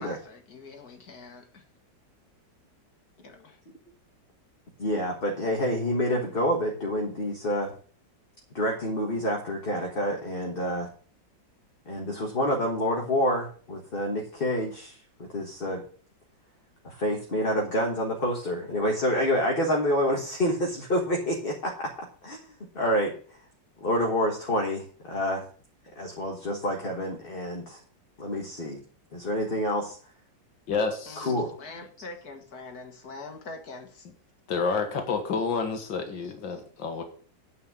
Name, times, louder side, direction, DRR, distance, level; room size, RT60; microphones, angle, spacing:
voice 1, 0.0-1.6 3.2-3.6 31.1-31.3 31.6-34.1, left 3 dB, 55° left, 5 dB, 2.1 m, -43 dB
voice 2, 4.8-7.7 8.5-10.9 11.8-15.0 15.3-15.8 16.8-23.4 23.8-25.4 25.9-27.8 28.2-28.8 29.1-30.0 31.2-31.5, equal, 30° left, 0 dB, 1.6 m, -28 dB
voice 3, 30.7-31.3 34.5-37.0, left 4 dB, 85° left, 5 dB, 2.3 m, -29 dB
9.4 x 5.5 x 7.5 m, 0.44 s
omnidirectional pair, 2.0 m